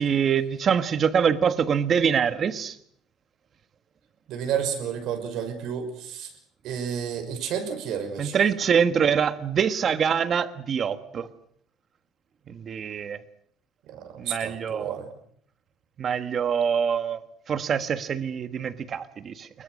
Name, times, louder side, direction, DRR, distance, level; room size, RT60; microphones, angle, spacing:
voice 1, 0.0-2.8 8.2-11.3 12.5-13.2 14.2-15.0 16.0-17.2 17.5-19.6, right 7 dB, 30° right, 1.5 m, -25 dB
voice 2, 4.3-6.3 6.6-8.4 13.9-15.1, right 8 dB, 50° right, 5.9 m, -31 dB
28.0 x 23.0 x 6.5 m
cardioid pair, 180°, 0 cm